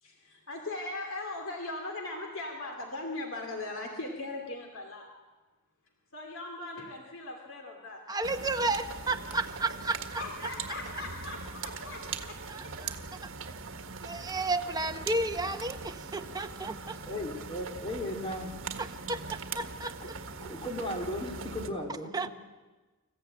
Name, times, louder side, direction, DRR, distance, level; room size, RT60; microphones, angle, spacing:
voice 1, 0.0-5.1 6.1-8.0 9.3-9.4 10.1-12.4, left 2 dB, 65° left, 2 dB, 2.8 m, -39 dB
voice 2, 8.1-10.2 12.5-13.2 14.0-17.0 18.8-19.9 22.1-22.3, right 2 dB, 20° right, 7 dB, 0.9 m, -32 dB
sound 1, 8.2-21.7, right 5 dB, 65° right, 1.7 m, -41 dB
voice 3, 17.0-18.5 20.0-20.1 20.4-22.3, left 1 dB, 25° left, 2 dB, 3.1 m, -36 dB
27.0 x 15.0 x 8.9 m, 1.3 s
head